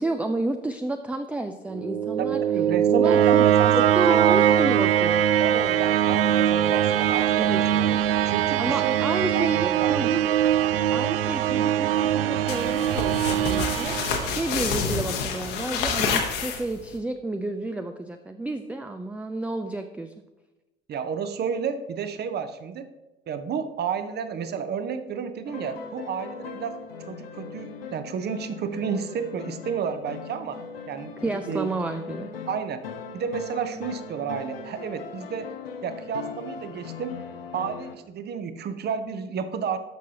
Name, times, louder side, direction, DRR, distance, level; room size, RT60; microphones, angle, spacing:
voice 1, 0.0-2.4 2.9-5.3 7.3-7.6 8.6-10.2 10.9-20.1 31.2-32.3, right 2 dB, 5° right, 7 dB, 0.4 m, -30 dB
sound 1, 1.7-14.7, right 10 dB, 70° right, 0.4 m, -22 dB
voice 2, 2.2-4.7 5.4-8.0 8.2-8.9 9.3-10.2 20.9-22.9 23.3-26.8 27.1-30.6 30.9-31.7 32.5-32.8 33.1-35.5 35.8-37.1 37.5-39.8, right 7 dB, 35° right, 10 dB, 0.8 m, -31 dB
sound 2, 12.5-17.0, left 5 dB, 65° left, 1.3 m, -28 dB
sound 3, 25.4-37.9, left 5 dB, 80° left, 0.8 m, -39 dB
12.5 x 6.0 x 2.9 m, 1.0 s
figure-of-eight pair, 60°, 29 cm